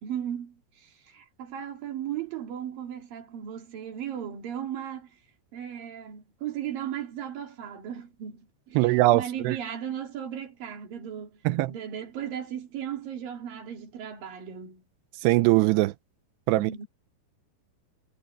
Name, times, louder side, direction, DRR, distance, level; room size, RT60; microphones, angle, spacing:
voice 1, 0.0-5.1 5.5-11.4 11.7-14.8 16.5-16.9, right 9 dB, 60° right, 4.3 m, -36 dB
voice 2, 8.8-9.6 11.4-11.7 15.2-15.9 16.5-16.7, right 18 dB, 90° right, 2.8 m, -21 dB
omnidirectional pair, 4.8 m